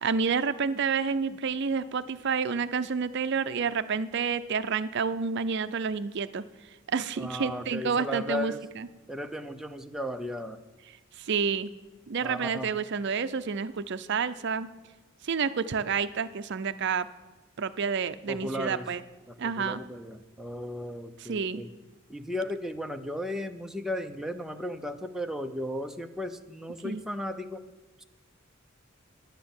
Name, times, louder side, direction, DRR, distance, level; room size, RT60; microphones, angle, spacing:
voice 1, 0.0-6.4 6.9-8.9 11.2-11.7 12.1-14.7 15.2-17.1 17.6-19.0 19.4-19.8 21.2-21.6 26.8-27.0, right 5 dB, 55° right, 13 dB, 0.5 m, -29 dB
voice 2, 7.2-8.6 9.1-10.6 12.2-12.7 18.3-18.9 19.3-21.7 22.1-27.6, left 1 dB, ahead, 5 dB, 0.6 m, -35 dB
10.0 x 9.9 x 7.2 m, 1.1 s
head